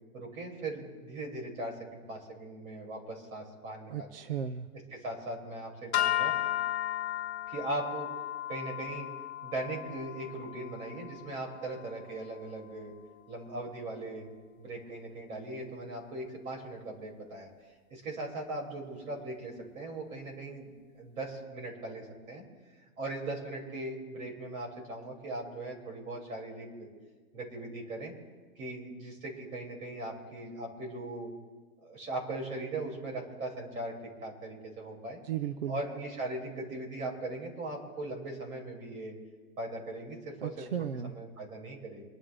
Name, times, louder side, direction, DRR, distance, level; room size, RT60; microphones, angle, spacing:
voice 1, 0.1-4.1 4.9-6.3 7.5-8.1 8.5-9.1 9.4-12.9 13.3-14.3 14.6-17.5 17.9-22.4 23.0-26.9 27.3-28.1 28.6-31.3 31.8-35.2 35.7-39.2 39.6-40.7 41.0-42.0, right 2 dB, 70° right, -1 dB, 6.0 m, -39 dB
voice 2, 3.9-4.7 35.2-35.8 40.4-41.1, right 9 dB, 40° right, 11 dB, 0.6 m, -35 dB
sound 1, 5.9-12.3, left 13 dB, 50° left, 0.6 m, -35 dB
27.5 x 12.5 x 3.4 m, 1.4 s
hypercardioid pair, 180°, 44 cm